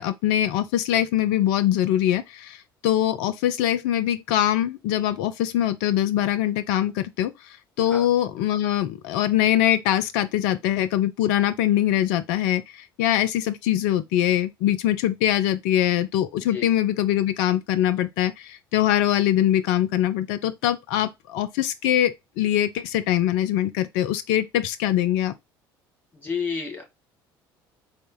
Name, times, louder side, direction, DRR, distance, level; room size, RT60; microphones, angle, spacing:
voice 1, 0.0-2.6 2.8-7.3 7.8-12.6 13.0-25.3, left 12 dB, 60° left, 0.5 m, -23 dB
voice 2, 26.2-26.8, left 5 dB, 15° left, 1.7 m, -30 dB
3.9 x 2.0 x 3.7 m
figure-of-eight pair, 60°, 12 cm